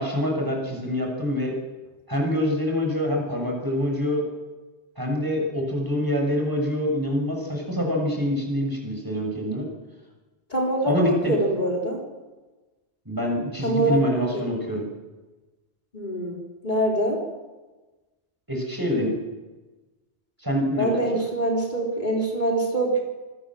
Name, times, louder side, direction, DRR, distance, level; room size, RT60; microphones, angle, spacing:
voice 1, 0.0-1.5 2.1-4.2 5.0-9.7 10.9-11.3 13.1-14.8 18.5-19.2 20.4-20.9, equal, 20° right, 0 dB, 6.9 m, -25 dB
voice 2, 10.5-12.0 13.6-14.1 14.3-14.5 15.9-16.4 16.6-17.2 20.8-23.0, right 1 dB, 40° left, -1 dB, 4.1 m, -24 dB
26.0 x 19.5 x 7.7 m, 1.2 s
omnidirectional pair, 1.2 m